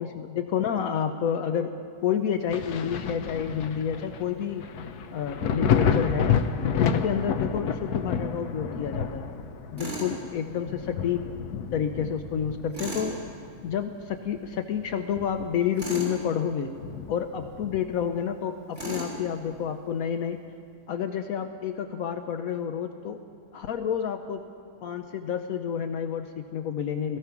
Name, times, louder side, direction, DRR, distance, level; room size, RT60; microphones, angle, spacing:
voice 1, 0.0-1.7 2.0-4.6 5.1-6.3 6.8-9.3 9.7-11.2 11.7-13.2 13.6-16.7 17.1-20.4 20.9-23.2 23.5-24.4 24.8-27.2, left 8 dB, 70° left, 8 dB, 1.0 m, -29 dB
Thunder, 2.5-13.8 14.3-15.8 16.1-16.2 16.8-18.1 19.5-19.6, left 7 dB, 90° left, 1.3 m, -30 dB
Tools, 9.8-10.1 12.7-13.1 15.8-16.1 18.7-19.2, right 2 dB, 50° right, 3.9 m, -34 dB
17.0 x 14.5 x 5.9 m, 2.3 s
omnidirectional pair, 1.6 m